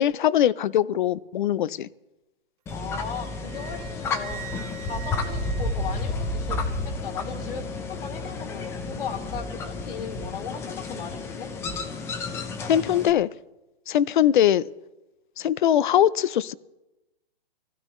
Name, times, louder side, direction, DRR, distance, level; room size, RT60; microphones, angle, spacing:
voice 1, 0.0-1.9 12.7-13.3 13.9-14.7 15.4-16.5, left 11 dB, 55° left, 19 dB, 0.6 m, -21 dB
voice 2, 2.7-4.4 4.8-11.5, left 6 dB, 70° left, 3 dB, 2.7 m, -37 dB
sound 1, 2.7-13.1, left 3 dB, 10° left, 0.7 m, -31 dB
Wind instrument woodwind instrument, 3.1-6.6, right 11 dB, 35° right, 2.4 m, -44 dB
24.5 x 16.0 x 3.2 m, 1.0 s
hypercardioid pair, 160°, 30 cm